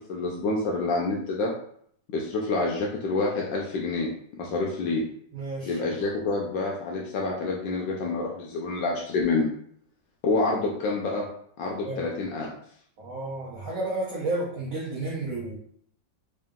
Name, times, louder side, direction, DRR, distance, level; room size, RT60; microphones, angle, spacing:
voice 1, 0.1-1.5 2.1-4.1 4.4-5.0 5.7-9.5 10.2-11.2 11.6-12.5, left 3 dB, 80° left, -2 dB, 1.3 m, -27 dB
voice 2, 5.3-5.8 11.8-12.0 13.0-15.6, right 2 dB, 55° right, -5 dB, 1.1 m, -31 dB
3.7 x 2.6 x 3.6 m, 0.65 s
omnidirectional pair, 2.1 m